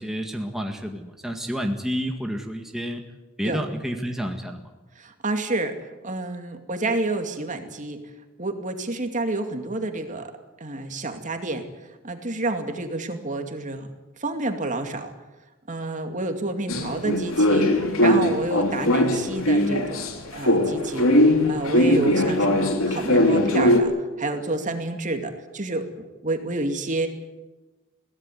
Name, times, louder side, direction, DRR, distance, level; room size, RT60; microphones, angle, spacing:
voice 1, 0.0-3.0 3.4-4.7, equal, ahead, 2 dB, 1.9 m, -29 dB
voice 2, 5.0-8.0 8.4-10.3 10.6-11.6 12.0-13.9 14.2-15.1 15.7-27.1, right 2 dB, 35° right, 6 dB, 2.5 m, -29 dB
sound 1, 16.7-20.1 20.4-23.8, left 1 dB, 80° left, 3.3 m, -20 dB
23.0 x 17.5 x 9.4 m, 1.1 s
head